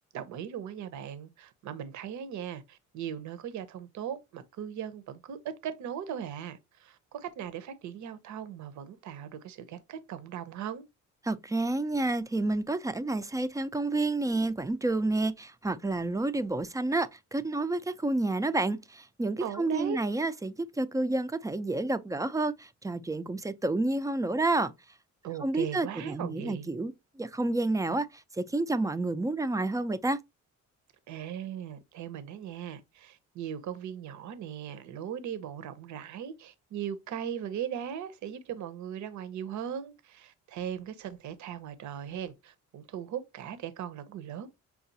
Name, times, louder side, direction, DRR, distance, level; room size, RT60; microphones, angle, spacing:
voice 1, 0.1-10.8 19.4-20.0 25.2-26.7 31.1-44.5, right 9 dB, 70° right, 0.7 m, -38 dB
voice 2, 11.2-24.7 25.4-30.2, right 2 dB, 10° right, 0.3 m, -29 dB
5.6 x 2.3 x 2.6 m
cardioid pair, 90°, 30 cm